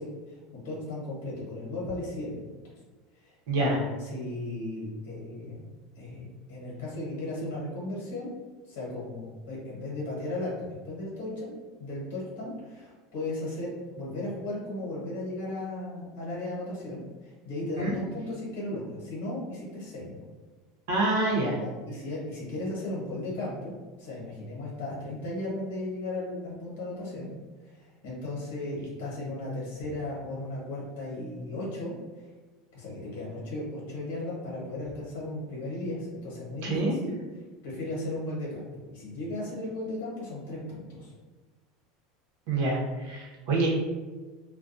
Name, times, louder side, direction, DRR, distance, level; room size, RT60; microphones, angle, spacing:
voice 1, 0.0-2.5 3.2-5.6 6.0-8.3 8.7-20.2 21.6-27.3 27.7-32.3 32.7-37.2 37.6-41.1, left 2 dB, 85° left, -5 dB, 1.0 m, -36 dB
voice 2, 3.5-3.8 17.8-17.9 20.9-21.6 36.6-36.9 42.5-43.7, right 2 dB, 65° right, -4 dB, 0.8 m, -26 dB
2.3 x 2.2 x 2.5 m, 1.3 s
supercardioid pair, 160°, 0 cm